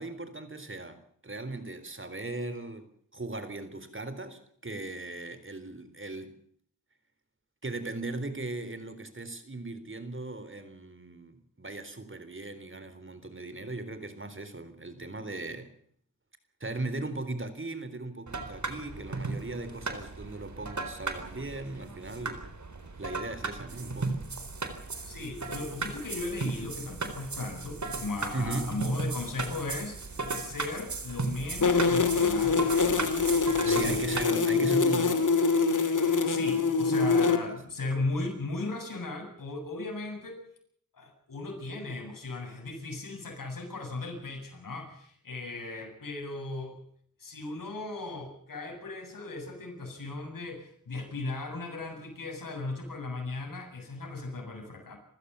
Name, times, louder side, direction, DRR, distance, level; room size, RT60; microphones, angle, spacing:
voice 1, 0.0-6.3 7.6-15.7 16.6-22.5 23.0-24.2 28.3-28.8 33.6-35.4 37.5-37.6, right 2 dB, 40° right, 3.9 m, -38 dB
sound 1, 18.3-34.3, right 3 dB, 60° right, 4.2 m, -36 dB
voice 2, 25.0-33.1 33.5-34.0 36.2-40.4 40.9-46.8 47.2-55.0, left 3 dB, 90° left, 8.0 m, -37 dB
sound 2, 31.6-37.4, left 4 dB, 70° left, 2.6 m, -24 dB
28.0 x 15.5 x 7.0 m
wide cardioid pair, 60°, 32 cm